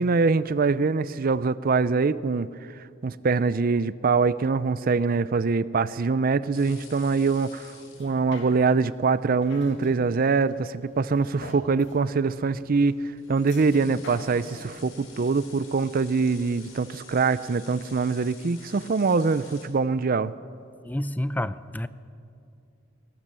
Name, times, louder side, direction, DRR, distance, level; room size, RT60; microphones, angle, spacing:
voice 1, 0.0-20.3, right 4 dB, 45° right, 16 dB, 0.5 m, -24 dB
sound 1, 6.5-19.7, left 5 dB, 80° left, 4.7 m, -50 dB
sound 2, 7.9-16.4 16.8-16.9, left 2 dB, 60° left, 2.3 m, -45 dB
voice 2, 20.8-21.9, left 1 dB, 10° left, 14 dB, 0.5 m, -29 dB
21.5 x 18.5 x 7.5 m, 2.5 s
head